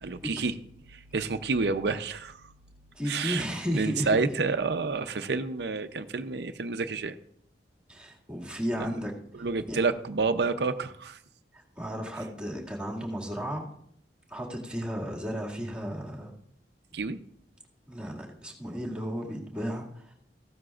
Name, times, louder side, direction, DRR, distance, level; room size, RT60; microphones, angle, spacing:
voice 1, 0.0-0.5 0.9-2.4 3.1-3.5 3.7-7.2 8.8-9.0 9.3-11.2 16.9-17.2, right 4 dB, 70° right, 9 dB, 0.6 m, -29 dB
voice 2, 2.9-4.3 7.9-9.8 11.5-13.7 14.3-16.3 17.9-20.1, equal, 5° right, -2 dB, 2.1 m, -34 dB
15.0 x 12.5 x 2.4 m, 0.68 s
head